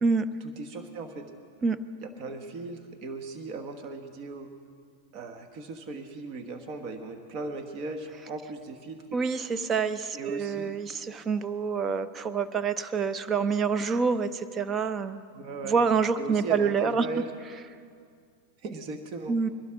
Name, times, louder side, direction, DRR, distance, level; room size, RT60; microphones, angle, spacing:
voice 1, 0.6-1.3 2.0-4.5 5.1-9.0 10.1-10.7 15.3-15.8 16.2-17.3 18.6-19.4, right 3 dB, 45° right, 6 dB, 1.2 m, -38 dB
voice 2, 9.1-15.2 15.6-17.1 19.3-19.5, right 5 dB, 25° right, 13 dB, 0.6 m, -27 dB
22.0 x 12.0 x 3.7 m, 2.2 s
hypercardioid pair, 115°, 0 cm